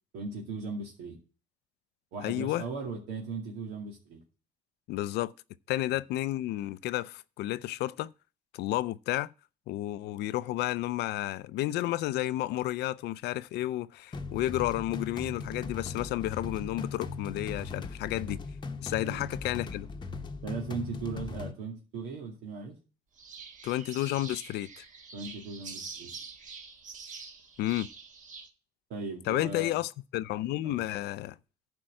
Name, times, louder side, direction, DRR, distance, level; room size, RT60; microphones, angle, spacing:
voice 1, 0.1-1.2 2.1-4.2 5.9-6.0 19.0-19.2 20.4-22.8 25.1-26.1 28.9-29.8 30.6-30.8, right 4 dB, 85° right, 2.4 m, -38 dB
voice 2, 2.2-2.7 4.9-5.3 5.7-8.1 8.5-9.3 9.7-18.4 18.8-19.9 23.6-24.8 27.6-27.9 29.3-31.4, left 15 dB, 80° left, 0.5 m, -31 dB
sound 1, 14.1-21.5, left 4 dB, 25° left, 0.9 m, -39 dB
sound 2, 23.2-28.5, right 5 dB, 50° right, 1.6 m, -45 dB
10.5 x 4.6 x 7.7 m
cardioid pair, 110°, 17 cm